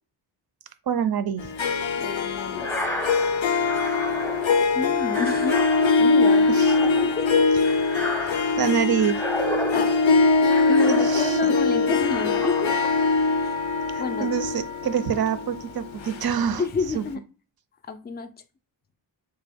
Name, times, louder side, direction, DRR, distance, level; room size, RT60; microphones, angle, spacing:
voice 1, 0.9-1.5 6.5-6.9 8.2-9.2 10.9-11.5 13.9-16.6 16.9-17.0, right 8 dB, 55° right, 0.5 m, -26 dB
Harp, 1.4-16.8, left 4 dB, 85° left, 0.5 m, -22 dB
voice 2, 2.0-2.9 4.3-4.4 4.7-5.6 5.9-6.5 7.0-7.3 9.7-9.9 10.7-12.9 13.4-13.6 14.0-14.3 16.6-17.2 17.9-18.3, left 5 dB, 25° left, 0.3 m, -29 dB
sound 1, 2.5-11.6 12.0-13.0, equal, 5° left, 0.7 m, -33 dB
3.4 x 2.2 x 3.4 m
wide cardioid pair, 115°, 45 cm